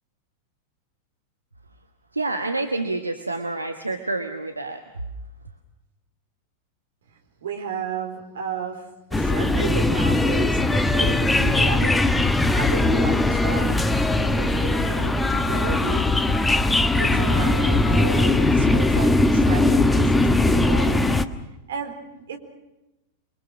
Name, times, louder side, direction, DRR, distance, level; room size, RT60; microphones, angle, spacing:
voice 1, 2.1-4.8, right 2 dB, 80° right, 6 dB, 1.4 m, -28 dB
voice 2, 7.4-12.3 12.5-13.9 14.2-16.5 16.9-21.1 21.7-22.4, right 6 dB, 65° right, 5 dB, 4.2 m, -33 dB
sound 1, 9.1-21.2, left 2 dB, 10° left, 1.2 m, -20 dB
29.0 x 23.5 x 6.2 m, 0.97 s
figure-of-eight pair, 90°, 0 cm